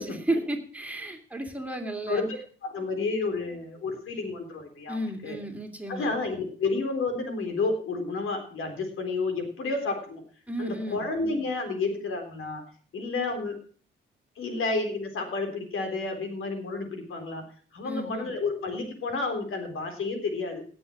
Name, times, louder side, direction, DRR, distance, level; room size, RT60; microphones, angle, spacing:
voice 1, 0.0-2.2 4.9-6.1 10.5-11.0 17.8-18.3, right 1 dB, 5° right, 3 dB, 2.8 m, -33 dB
voice 2, 2.6-5.4 5.9-10.2 10.6-12.6 12.9-13.6 14.4-17.4 17.7-20.6, left 3 dB, 75° left, 5 dB, 3.7 m, -30 dB
17.5 x 7.0 x 6.1 m, 0.44 s
cardioid pair, 75°, 21 cm